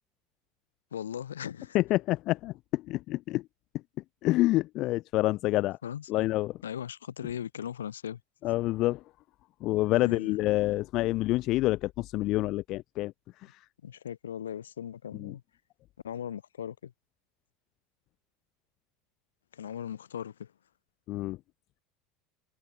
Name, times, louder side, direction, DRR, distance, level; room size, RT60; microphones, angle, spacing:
voice 1, 0.9-1.8 5.8-6.3 6.6-8.2 9.9-10.4 13.8-15.4 16.0-16.9 19.5-20.5, left 9 dB, 80° left, 1.7 m, -38 dB
voice 2, 1.7-3.4 4.2-5.8 6.1-6.5 8.4-9.0 9.6-13.1 13.5-13.6 15.2-15.3 21.1-21.4, left 18 dB, 50° left, 0.4 m, -27 dB
figure-of-eight pair, 75°, 0 cm